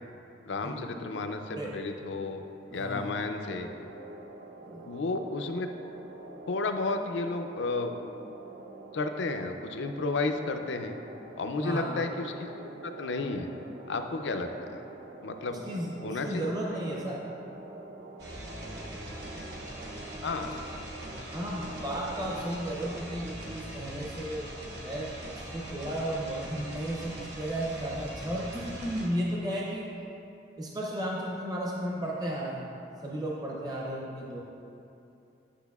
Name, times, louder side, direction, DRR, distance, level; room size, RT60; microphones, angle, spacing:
voice 1, 0.4-2.4 2.7-3.7 4.9-5.7 6.5-7.9 8.9-10.9 11.4-13.5 13.9-14.8 15.2-15.6 16.0-16.5 16.8-16.9 20.2-20.5, left 3 dB, 70° left, 6 dB, 0.4 m, -32 dB
voice 2, 2.7-3.1 4.6-4.8 11.6-11.9 15.5-17.2 21.3-24.5 24.8-29.9 30.6-32.7 33.0-34.4, right 1 dB, 20° right, -4 dB, 0.6 m, -34 dB
sound 1, 3.4-23.2, right 2 dB, 75° right, 0.6 m, -46 dB
sound 2, 18.2-29.1, right 1 dB, 60° right, 1.1 m, -42 dB
10.0 x 6.0 x 2.3 m, 2.8 s
head